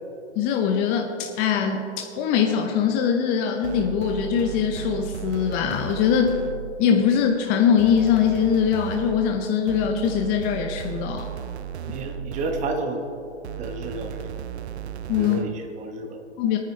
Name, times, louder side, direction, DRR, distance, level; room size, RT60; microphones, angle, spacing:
voice 1, 0.4-1.8 2.2-6.4 6.8-11.3 15.1-15.4 16.4-16.6, left 7 dB, 25° left, 3 dB, 0.8 m, -22 dB
sound 1, 3.6-6.9 7.8-12.9 13.4-15.7, right 9 dB, 70° right, 0.6 m, -35 dB
voice 2, 11.8-13.1 13.6-14.4 15.2-16.2, right 2 dB, 20° right, 4 dB, 1.3 m, -31 dB
21.5 x 9.5 x 3.3 m, 2.7 s
hypercardioid pair, 120°, 34 cm